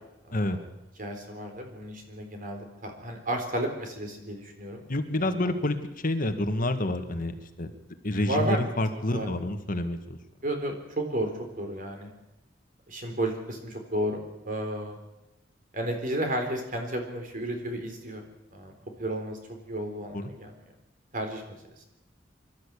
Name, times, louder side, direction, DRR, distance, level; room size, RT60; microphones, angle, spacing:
voice 1, 0.3-0.6 1.0-4.8 5.2-5.5 8.3-8.6 9.1-9.3 10.4-12.1 12.9-15.0 15.7-18.2 18.5-18.7 19.0-20.5 21.1-21.6, right 1 dB, 50° right, 4 dB, 4.1 m, -32 dB
voice 2, 4.9-7.7 8.0-10.2 20.1-20.3, left 1 dB, 50° left, 8 dB, 1.7 m, -28 dB
24.5 x 13.0 x 8.5 m, 0.95 s
head